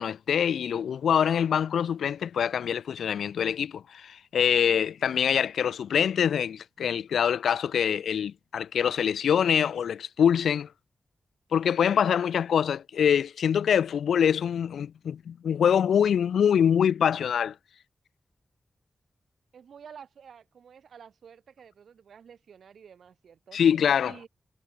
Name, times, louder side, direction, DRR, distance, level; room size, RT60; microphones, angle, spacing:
voice 1, 0.0-10.7 11.5-17.5 23.5-24.1, left 8 dB, 90° left, 0.6 m, -24 dB
voice 2, 19.5-23.6 24.0-24.3, right 7 dB, 85° right, 7.6 m, -50 dB
cardioid pair, 45°, 0 cm